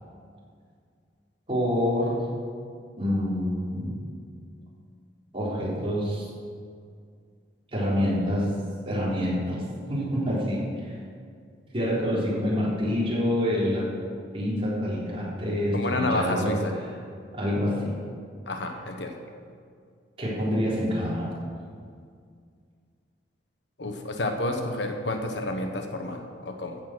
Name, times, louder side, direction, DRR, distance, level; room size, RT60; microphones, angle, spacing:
voice 1, 1.5-2.3 3.0-4.0 5.3-6.3 7.7-8.5 8.8-10.9 11.7-13.9 14.3-16.6 17.3-17.9 20.2-21.3, equal, 30° right, -7 dB, 4.0 m, -27 dB
voice 2, 15.7-16.7 18.5-19.2 23.8-26.8, left 2 dB, 70° left, 4 dB, 1.2 m, -30 dB
15.0 x 7.5 x 6.2 m, 2.2 s
head